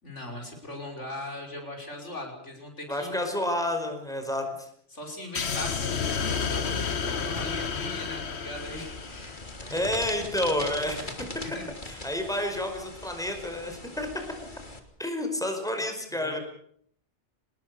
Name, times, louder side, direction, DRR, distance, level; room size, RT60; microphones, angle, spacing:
voice 1, 0.0-3.2 4.9-9.8 11.4-12.0 15.7-15.8 16.2-16.4, left 2 dB, 80° left, 3 dB, 6.3 m, -40 dB
voice 2, 2.9-4.7 9.6-11.1 11.9-14.1 15.0-16.4, left 1 dB, 5° left, 5 dB, 5.1 m, -30 dB
sound 1, 5.3-9.7, left 6 dB, 65° left, 1.5 m, -31 dB
Gunshot gunfire, 7.3-9.4 9.7-9.8 10.4-10.6, equal, 30° right, 5.6 m, -46 dB
sound 2, 8.5-14.8, left 2 dB, 40° left, 3.2 m, -41 dB
27.0 x 20.0 x 6.9 m, 0.67 s
omnidirectional pair, 1.2 m